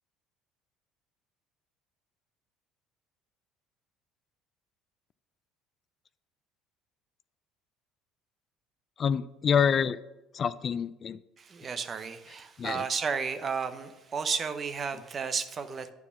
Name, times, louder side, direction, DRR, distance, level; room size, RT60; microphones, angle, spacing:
voice 1, 9.0-10.0 10.3-11.2 12.6-12.8, left 7 dB, 45° left, 16 dB, 0.3 m, -27 dB
voice 2, 11.5-15.9, right 5 dB, 40° right, 10 dB, 0.8 m, -33 dB
9.2 x 4.8 x 6.9 m, 0.98 s
supercardioid pair, 85°, 0 cm